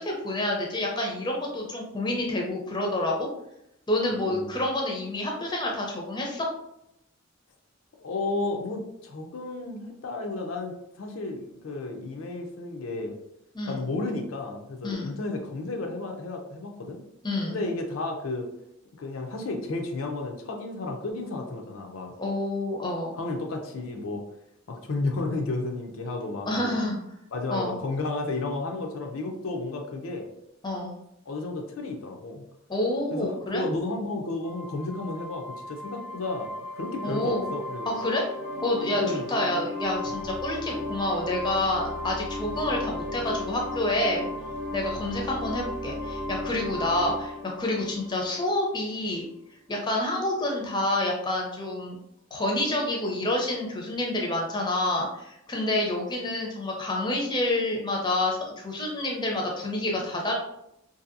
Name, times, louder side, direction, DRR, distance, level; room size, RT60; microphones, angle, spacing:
voice 1, 0.0-3.3 3.9-6.5 13.5-13.9 14.8-15.1 17.2-17.6 22.2-23.1 26.5-27.0 27.5-27.8 30.6-31.0 32.7-33.6 37.0-37.5 37.9-38.2 38.6-39.0 39.3-44.3 44.7-49.2 49.7-52.0 52.3-60.3, left 1 dB, 20° left, 0 dB, 0.5 m, -28 dB
voice 2, 4.1-4.6 8.0-13.1 13.7-17.0 17.5-18.5 19.0-22.1 23.2-24.2 24.7-26.8 27.3-30.3 31.3-32.4 33.1-38.0 38.5-39.3 40.1-40.3 45.0-45.2, left 2 dB, 80° left, 3 dB, 0.5 m, -32 dB
sound 1, 34.4-48.9, left 1 dB, 80° right, 0.7 m, -35 dB
2.7 x 2.6 x 2.5 m, 0.79 s
head